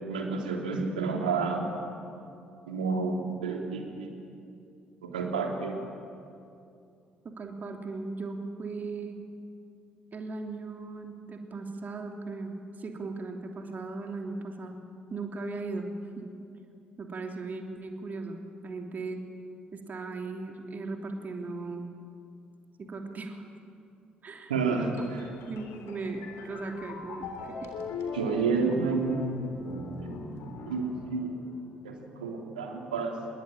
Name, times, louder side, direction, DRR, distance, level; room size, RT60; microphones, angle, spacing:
voice 1, 0.0-1.7 2.7-4.3 5.0-5.8 24.5-24.9 28.1-29.5 30.7-31.3 31.8-33.2, right 4 dB, 80° right, 2 dB, 3.2 m, -30 dB
voice 2, 7.2-9.2 10.1-14.8 15.1-15.9 16.2-16.3 17.0-19.2 19.7-21.8 22.8-23.5 24.2-27.7, right 3 dB, 40° right, 3 dB, 3.2 m, -38 dB
sound 1, 25.0-31.7, left 3 dB, 65° left, 3.7 m, -39 dB
26.5 x 22.0 x 9.1 m, 2.6 s
figure-of-eight pair, 45°, 5 cm